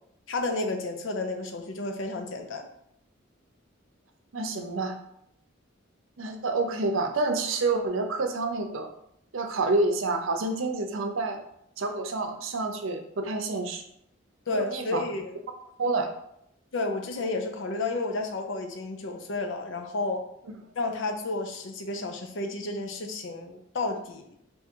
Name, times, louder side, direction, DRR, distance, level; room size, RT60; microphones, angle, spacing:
voice 1, 0.3-2.7 14.5-15.4 16.7-20.3 20.8-24.2, left 2 dB, 70° left, 4 dB, 0.6 m, -31 dB
voice 2, 4.3-5.0 6.2-8.9 9.3-11.4 11.8-13.8 14.5-15.0 15.8-16.1, right 3 dB, 80° right, 5 dB, 0.6 m, -28 dB
3.5 x 2.8 x 4.4 m, 0.76 s
head